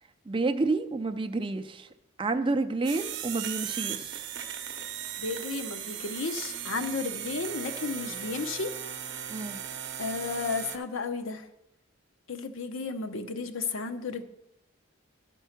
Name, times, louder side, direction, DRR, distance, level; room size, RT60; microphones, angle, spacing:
voice 1, 0.3-1.9 2.2-4.2 9.3-9.6, right 3 dB, 25° right, 9 dB, 0.4 m, -29 dB
sound 1, 2.8-10.8, right 9 dB, 55° right, 0.7 m, -37 dB
voice 2, 5.2-8.8 10.0-11.4 12.3-14.2, left 4 dB, 75° left, 7 dB, 0.7 m, -33 dB
12.5 x 4.5 x 5.8 m, 0.90 s
head